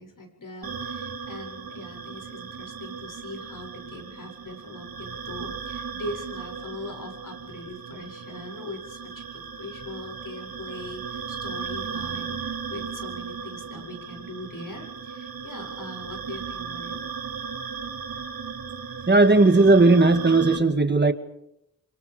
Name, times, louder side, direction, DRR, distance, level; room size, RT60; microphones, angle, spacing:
voice 1, 0.0-17.0, left 1 dB, 60° left, 7.9 m, -41 dB
sound 1, 0.6-20.6, right 6 dB, 75° right, 3.1 m, -36 dB
voice 2, 19.1-21.1, right 3 dB, 30° right, 2.1 m, -17 dB
27.5 x 26.5 x 5.2 m
wide cardioid pair, 90°, 36 cm